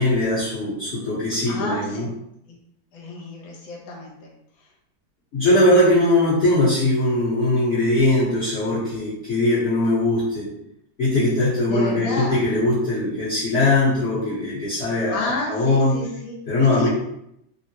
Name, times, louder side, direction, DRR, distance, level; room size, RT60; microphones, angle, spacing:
voice 1, 0.0-2.1 5.3-10.5 11.0-15.2 15.5-15.9 16.5-16.9, left 1 dB, 45° left, -11 dB, 1.0 m, -20 dB
voice 2, 1.5-2.1 2.5-2.6 2.9-4.3 4.6-4.7 11.7-12.5 14.9-16.4 16.7-16.9, left 2 dB, 75° left, -1 dB, 1.5 m, -30 dB
3.6 x 2.1 x 2.8 m, 0.78 s
omnidirectional pair, 2.2 m